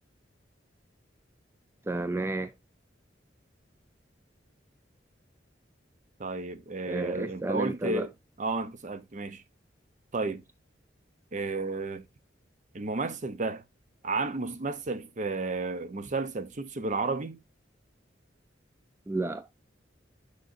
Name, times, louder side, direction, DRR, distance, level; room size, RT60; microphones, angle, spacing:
voice 1, 1.8-2.5 6.9-8.1 19.1-19.5, right 2 dB, 15° right, 0.3 m, -31 dB
voice 2, 6.2-8.1 8.4-9.4 10.1-10.4 11.3-12.0 12.7-13.6 14.0-17.4, right 3 dB, 40° right, 0.6 m, -32 dB
6.6 x 6.5 x 2.5 m
head